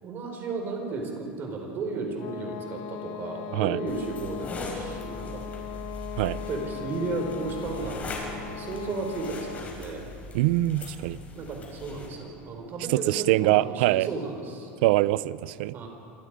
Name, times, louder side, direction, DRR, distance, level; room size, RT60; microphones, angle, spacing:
voice 1, 0.0-5.5 6.5-10.0 11.3-14.7 15.7-15.9, right 3 dB, 40° right, 2 dB, 5.1 m, -34 dB
sound 1, 2.1-9.8, left 9 dB, 65° left, 1.4 m, -39 dB
sound 2, 3.9-12.1, left 2 dB, 30° left, 5.6 m, -40 dB
voice 2, 10.3-11.2 12.9-14.1 14.8-15.7, right 17 dB, 75° right, 18 dB, 0.6 m, -23 dB
27.0 x 21.0 x 5.1 m, 2.5 s
supercardioid pair, 125°, 5 cm